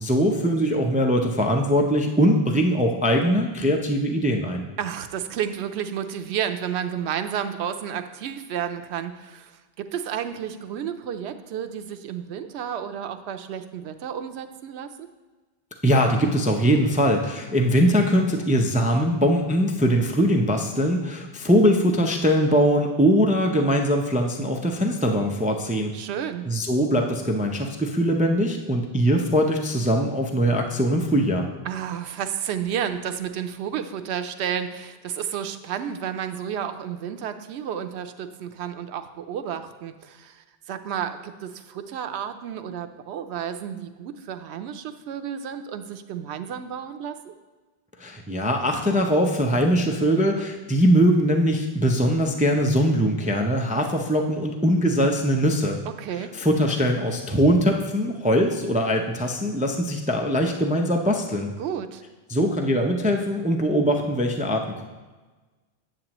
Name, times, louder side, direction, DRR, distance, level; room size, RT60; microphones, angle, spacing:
voice 1, 0.0-4.7 15.8-25.9 26.5-31.5 48.0-55.8 56.3-61.5 62.3-64.8, equal, 15° right, 2 dB, 0.3 m, -21 dB
voice 2, 4.8-15.1 25.9-26.5 31.7-47.3 56.0-56.3 61.6-62.0, right 8 dB, 90° right, 9 dB, 0.8 m, -31 dB
9.1 x 7.4 x 3.0 m, 1.3 s
omnidirectional pair, 1.1 m